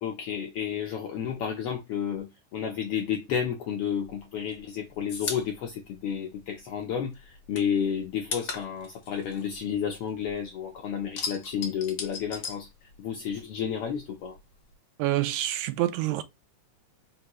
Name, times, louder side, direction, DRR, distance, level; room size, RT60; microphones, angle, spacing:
voice 1, 0.0-12.7 13.0-14.4, left 8 dB, 75° left, 1.3 m, -31 dB
sound 1, 4.1-6.9 7.1-10.4 10.7-13.4 13.6-14.7, left 5 dB, 55° left, 1.1 m, -38 dB
voice 2, 15.0-16.2, right 14 dB, 90° right, 2.0 m, -27 dB
5.1 x 2.7 x 3.0 m
omnidirectional pair, 3.3 m